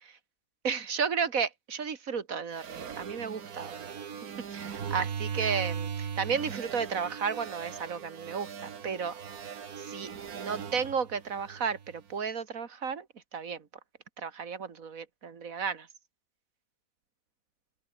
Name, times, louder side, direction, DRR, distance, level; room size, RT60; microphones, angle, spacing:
voice 1, 0.6-3.9 4.2-9.1 9.8-13.1 13.3-13.6 14.2-15.9, right 6 dB, 65° right, 2.1 m, -33 dB
sound 1, 2.5-12.0, right 7 dB, 90° right, 1.9 m, -39 dB
open air
omnidirectional pair, 1.5 m